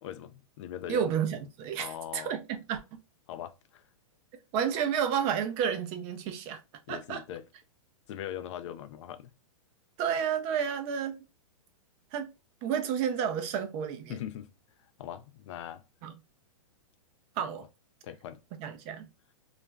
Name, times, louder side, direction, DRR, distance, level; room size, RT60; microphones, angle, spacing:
voice 1, 0.0-1.1 1.8-2.3 3.3-3.8 6.9-7.5 8.1-9.3 14.1-14.5 15.0-15.8 18.0-18.4, left 10 dB, 60° left, 0.4 m, -40 dB
voice 2, 0.9-2.8 4.5-6.6 6.9-7.2 10.0-11.2 12.1-12.3 12.6-14.2 16.0-16.1 17.4-17.6 18.6-19.1, right 8 dB, 35° right, 0.5 m, -31 dB
2.4 x 2.1 x 3.2 m
hypercardioid pair, 130°, 18 cm